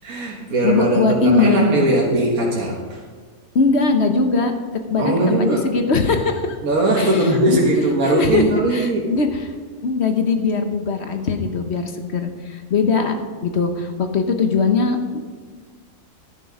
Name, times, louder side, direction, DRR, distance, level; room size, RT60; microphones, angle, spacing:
voice 1, 0.0-3.0 5.0-5.7 6.6-9.1, right 1 dB, 80° right, -3 dB, 1.9 m, -19 dB
voice 2, 0.6-1.6 3.5-4.5 4.9-6.6 7.0-7.6 8.0-8.4 8.7-9.4 9.8-15.2, left 4 dB, 55° left, 6 dB, 1.2 m, -20 dB
11.5 x 10.5 x 4.9 m, 1.5 s
omnidirectional pair, 1.5 m